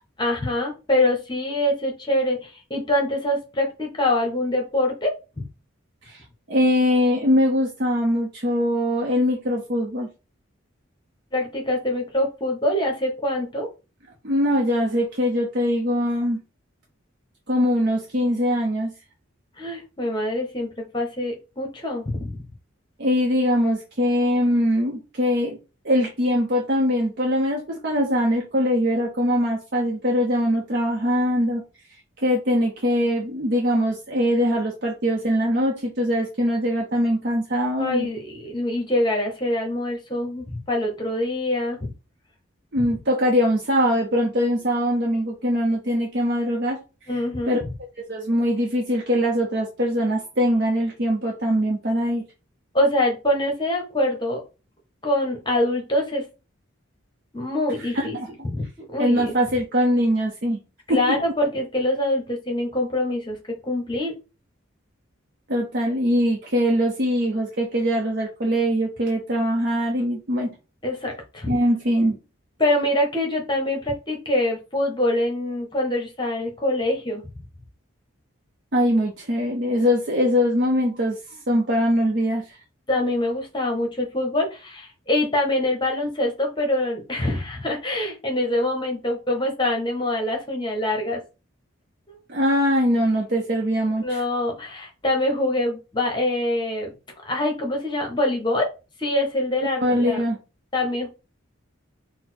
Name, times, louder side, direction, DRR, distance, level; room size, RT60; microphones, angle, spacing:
voice 1, 0.2-5.1 11.3-13.7 19.6-22.4 37.8-41.9 47.1-47.7 52.7-54.4 55.0-56.2 57.3-58.2 58.5-58.6 58.9-59.3 60.9-64.1 70.8-71.5 72.6-77.2 82.9-91.2 92.1-92.2 94.0-96.9 97.2-98.7 99.0-100.2 100.7-101.1, left 1 dB, 20° left, 1 dB, 0.9 m, -24 dB
voice 2, 6.0-10.1 14.2-16.4 17.5-18.9 23.0-25.6 25.8-31.6 32.2-38.1 42.7-46.8 47.5-47.6 48.0-52.2 57.8-58.3 59.0-60.6 60.9-61.2 65.5-70.5 71.5-72.2 78.7-82.5 92.3-94.2 99.8-100.4, equal, 55° right, 0 dB, 0.7 m, -22 dB
4.0 x 2.1 x 4.3 m, 0.30 s
head